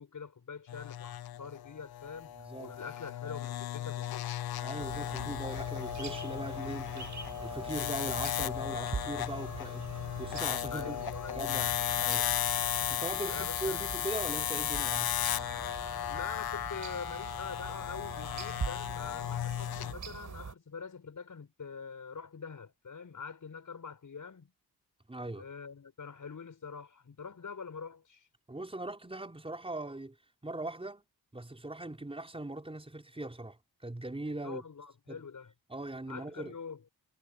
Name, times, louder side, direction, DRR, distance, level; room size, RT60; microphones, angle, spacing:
voice 1, 0.0-4.3 10.7-11.5 13.2-13.9 16.0-24.5 25.3-28.3 34.4-35.5 36.1-36.8, left 5 dB, 50° left, 5.9 m, -44 dB
sound 1, 0.7-19.9, left 12 dB, 70° left, 0.5 m, -35 dB
voice 2, 2.4-2.8 4.6-11.0 11.4-11.7 12.0-12.3 12.9-15.1 25.1-25.4 28.5-30.2 30.4-31.0 31.3-34.6 35.1-35.2 35.7-36.5, right 2 dB, 15° right, 5.3 m, -40 dB
sound 2, 4.8-20.5, right 5 dB, 50° right, 6.1 m, -44 dB
wide cardioid pair, 165°, 38 cm